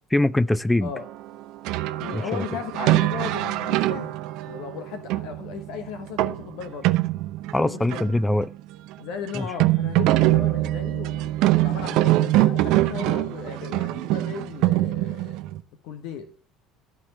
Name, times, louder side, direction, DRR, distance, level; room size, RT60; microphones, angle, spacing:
voice 1, 0.1-0.9 2.1-2.4 7.5-8.5 9.3-9.5, left 1 dB, 10° left, 0.6 m, -22 dB
sound 1, 1.6-8.3 8.6-8.7 8.9-9.0 9.3-15.6, right 17 dB, 60° right, 0.7 m, -23 dB
voice 2, 2.0-4.2 4.5-6.9 7.6-8.1 9.0-15.4 15.8-16.3, left 7 dB, 60° left, 1.2 m, -36 dB
14.0 x 4.9 x 8.4 m
figure-of-eight pair, 60°, 0 cm